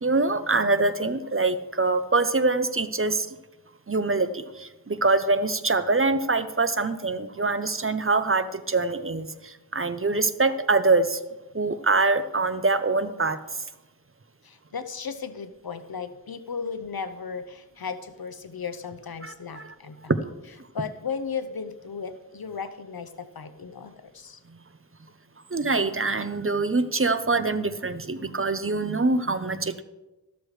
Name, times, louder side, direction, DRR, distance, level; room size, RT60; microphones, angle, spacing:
voice 1, 0.0-3.3 3.9-11.2 11.5-13.4 19.2-19.7 20.1-20.2 25.5-29.8, right 3 dB, 35° right, 12 dB, 0.7 m, -24 dB
voice 2, 14.4-20.0 20.7-24.4, left 6 dB, 80° left, 11 dB, 0.8 m, -35 dB
13.0 x 12.5 x 3.2 m, 1.1 s
wide cardioid pair, 45°, 36 cm